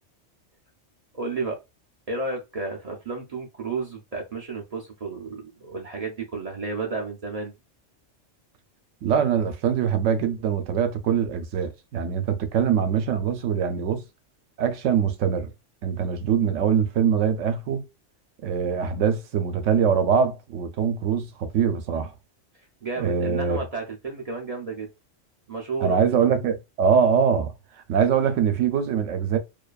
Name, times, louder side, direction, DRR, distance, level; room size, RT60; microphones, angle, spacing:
voice 1, 1.1-1.6 2.1-7.5 22.8-24.9 25.5-26.0, right 4 dB, 55° right, 0.4 m, -32 dB
voice 2, 9.0-14.0 14.6-15.5 15.8-17.8 18.4-22.1 23.0-23.6 25.8-27.5 27.9-29.4, right 7 dB, 85° right, 0.9 m, -23 dB
2.6 x 2.3 x 2.3 m
omnidirectional pair, 1.2 m